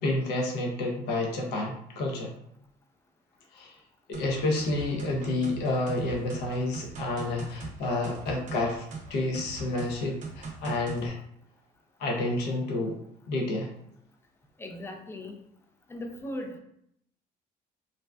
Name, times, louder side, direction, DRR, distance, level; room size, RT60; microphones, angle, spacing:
voice 1, 0.0-2.3 3.5-3.7 4.1-8.8 9.1-11.2 12.0-13.0 13.3-13.7, left 2 dB, 80° left, 0 dB, 0.6 m, -29 dB
sound 1, 4.1-11.1, right 3 dB, 45° right, 0.5 m, -41 dB
voice 2, 14.6-15.4 15.9-16.6, left 1 dB, 15° left, 3 dB, 0.4 m, -38 dB
2.5 x 2.2 x 2.2 m, 0.74 s
cardioid pair, 110°, 17 cm